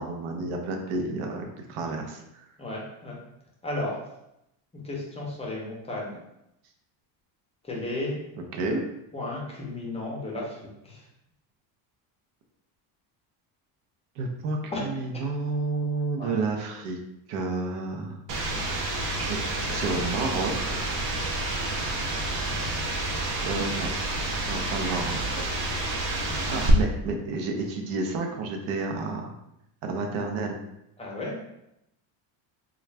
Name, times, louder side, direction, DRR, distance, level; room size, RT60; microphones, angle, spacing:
voice 1, 0.0-2.2 8.5-8.8 14.2-17.0 17.3-18.2 19.2-20.9 23.4-23.9 24.5-25.5 26.2-29.3 29.8-30.6, right 3 dB, 80° right, 3 dB, 0.8 m, -30 dB
voice 2, 2.6-3.2 3.6-4.0 4.7-6.2 7.6-8.2 8.6-8.8 9.1-11.1 14.7-14.9 16.2-16.4 31.0-31.4, left 2 dB, 15° left, -4 dB, 0.6 m, -34 dB
sound 1, 18.3-26.7, right 2 dB, 40° right, 0.6 m, -29 dB
3.6 x 2.3 x 3.3 m, 0.84 s
cardioid pair, 160°, 49 cm